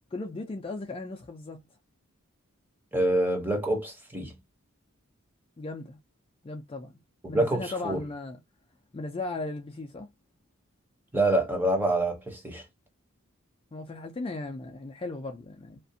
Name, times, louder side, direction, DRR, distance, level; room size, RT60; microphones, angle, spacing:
voice 1, 0.1-1.6 5.6-6.0 6.4-7.0 7.3-8.4 8.9-10.1 13.7-15.8, left 2 dB, 25° left, 0.3 m, -36 dB
voice 2, 2.9-4.3 7.2-8.0 11.1-12.6, right 1 dB, 10° right, 0.6 m, -26 dB
2.4 x 2.1 x 2.6 m
head